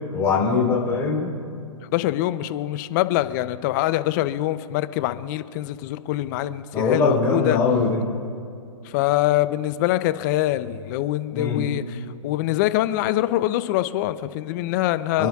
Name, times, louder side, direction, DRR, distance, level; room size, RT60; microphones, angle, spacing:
voice 1, 0.1-1.3 6.7-8.0 11.3-11.7 15.2-15.3, left 4 dB, 15° left, -4 dB, 3.8 m, -21 dB
voice 2, 1.8-7.6 8.8-15.3, left 15 dB, 35° left, 13 dB, 0.6 m, -24 dB
29.0 x 11.0 x 2.4 m, 2.5 s
hypercardioid pair, 135°, 17 cm